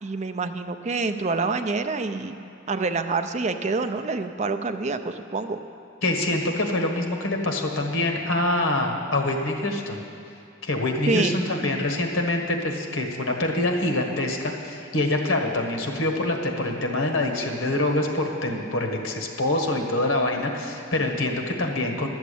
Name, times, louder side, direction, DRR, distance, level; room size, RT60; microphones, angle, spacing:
voice 1, 0.0-2.4 2.7-5.6 11.1-11.9, right 3 dB, 35° right, 8 dB, 0.5 m, -27 dB
voice 2, 6.0-10.0 10.6-22.1, left 2 dB, 80° left, 2 dB, 1.5 m, -25 dB
11.5 x 7.2 x 8.5 m, 2.6 s
head